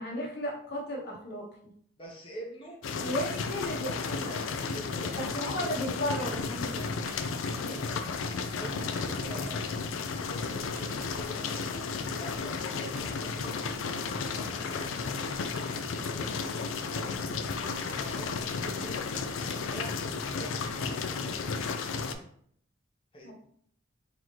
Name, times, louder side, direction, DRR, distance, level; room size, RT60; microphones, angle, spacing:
voice 1, 0.0-1.5 3.0-4.4 5.1-7.2 7.6-7.8 23.2-23.3, equal, 55° left, -3 dB, 1.1 m, -35 dB
voice 2, 2.0-2.8 4.7-5.4 7.5-15.7 16.2-18.3 18.6-20.0 20.3-20.8 21.2-21.4 23.1-23.3, right 1 dB, 25° left, -2 dB, 0.8 m, -46 dB
sound 1, 2.8-22.1, left 4 dB, 75° left, 0.4 m, -33 dB
sound 2, 7.1-8.1 8.9-9.5 10.7-11.6 12.9-13.5 15.3-16.0 17.8-18.4 18.9-20.1, right 4 dB, 45° right, 0.6 m, -55 dB
3.9 x 3.0 x 3.1 m, 0.65 s
head